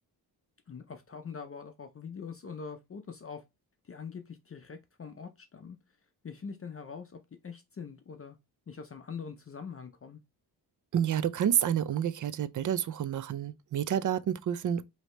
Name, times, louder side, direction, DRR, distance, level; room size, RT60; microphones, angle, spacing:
voice 1, 0.7-3.4 3.8-5.8 6.2-8.4 8.7-10.2, left 6 dB, 35° left, 0.5 m, -43 dB
voice 2, 10.9-14.8, right 9 dB, 50° right, 0.4 m, -29 dB
4.9 x 2.8 x 3.2 m
wide cardioid pair, 95°, 39 cm